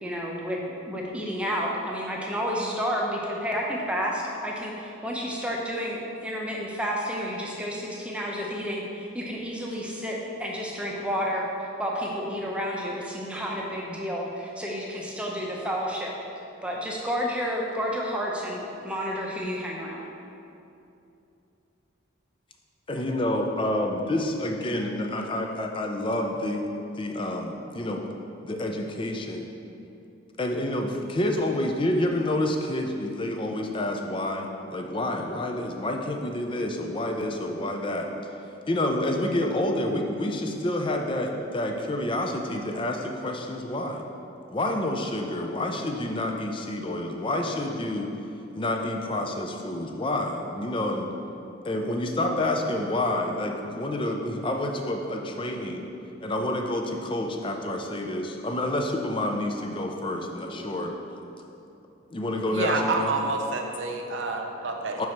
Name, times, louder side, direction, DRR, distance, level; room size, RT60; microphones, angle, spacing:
voice 1, 0.0-16.1 16.6-20.0, equal, 5° right, -2 dB, 0.7 m, -30 dB
voice 2, 22.9-26.7 27.0-28.1 28.4-29.5 30.4-38.1 38.7-44.0 44.5-48.1 48.6-51.1 51.6-55.9 56.2-60.9 62.1-63.2 65.0-65.1, left 1 dB, 25° left, 3 dB, 0.5 m, -28 dB
voice 3, 62.5-65.0, right 3 dB, 65° right, 3 dB, 0.7 m, -28 dB
5.3 x 4.7 x 5.8 m, 2.8 s
head